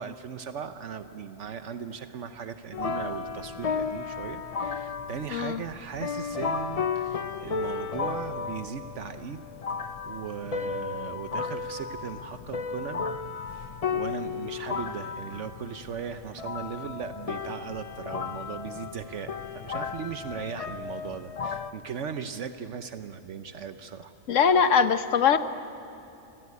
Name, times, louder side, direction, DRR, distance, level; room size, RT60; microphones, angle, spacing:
voice 1, 0.0-9.4 10.0-13.1 13.9-24.1, right 7 dB, 70° right, 9 dB, 1.2 m, -38 dB
sound 1, 2.7-21.7, left 5 dB, 35° left, 0.6 m, -34 dB
voice 2, 5.3-5.6 24.3-25.4, left 6 dB, 80° left, 11 dB, 1.3 m, -21 dB
29.0 x 19.0 x 9.6 m, 2.8 s
omnidirectional pair, 1.3 m